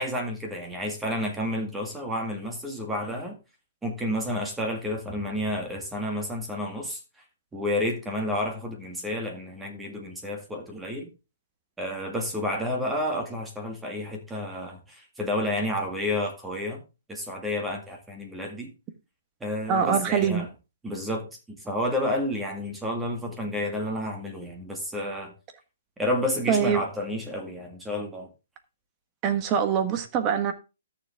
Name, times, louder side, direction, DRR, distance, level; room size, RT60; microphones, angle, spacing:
voice 1, 0.0-3.4 3.8-7.0 7.5-11.1 11.8-16.8 17.1-18.7 19.4-20.5 20.8-25.3 26.0-28.3, left 1 dB, 5° right, 2.1 m, -30 dB
voice 2, 19.7-20.5 26.5-26.8 29.2-30.5, right 7 dB, 25° right, 1.5 m, -23 dB
13.0 x 7.1 x 3.6 m
hypercardioid pair, 155°, 0 cm